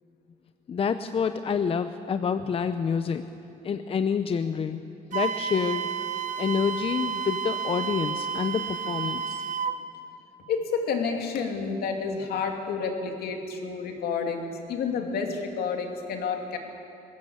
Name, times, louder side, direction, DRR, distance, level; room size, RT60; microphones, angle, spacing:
voice 1, 0.7-3.3 3.6-4.8 5.1-5.9 6.4-9.4, left 6 dB, 35° left, 10 dB, 0.7 m, -28 dB
Wind instrument woodwind instrument, 5.1-9.8, right 7 dB, 50° right, 1.1 m, -31 dB
voice 2, 10.5-16.6, left 5 dB, 65° left, 3 dB, 2.8 m, -30 dB
20.5 x 17.0 x 8.2 m, 2.8 s
cardioid pair, 110°, 17 cm